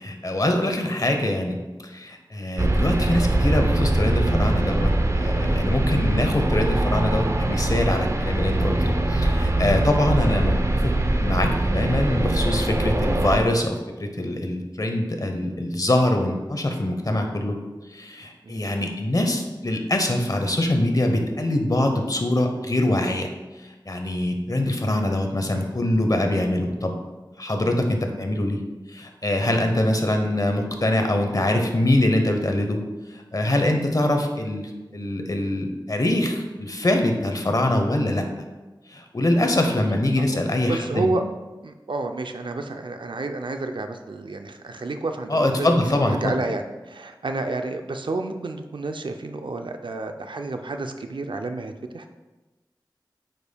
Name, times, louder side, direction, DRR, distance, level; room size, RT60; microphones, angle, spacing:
voice 1, 0.0-1.6 1.9-10.9 11.2-17.6 17.9-23.3 23.9-26.9 27.4-28.6 28.9-32.8 33.1-38.2 38.9-41.1 45.3-46.3, left 1 dB, 50° left, 4 dB, 0.9 m, -23 dB
sound 1, 2.6-13.4, right 1 dB, 35° right, 0.6 m, -22 dB
voice 2, 40.7-41.2 41.6-45.7 46.0-52.2, right 2 dB, 80° right, 6 dB, 0.5 m, -30 dB
8.8 x 5.3 x 2.3 m, 1.2 s
wide cardioid pair, 50°, 8 cm